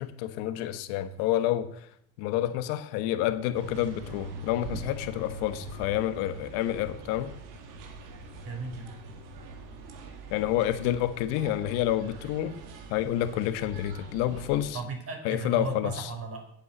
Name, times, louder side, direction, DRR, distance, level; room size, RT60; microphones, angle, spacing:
voice 1, 0.0-1.9 2.2-7.3 10.3-12.5 12.9-14.8 15.2-16.1, left 12 dB, 80° left, 11 dB, 1.2 m, -29 dB
sound 1, 3.5-14.8, right 1 dB, 70° right, 2.0 m, -43 dB
voice 2, 8.4-8.9 14.7-16.5, right 3 dB, 45° right, 3 dB, 4.3 m, -35 dB
8.9 x 8.3 x 7.8 m, 0.71 s
supercardioid pair, 75°, 33 cm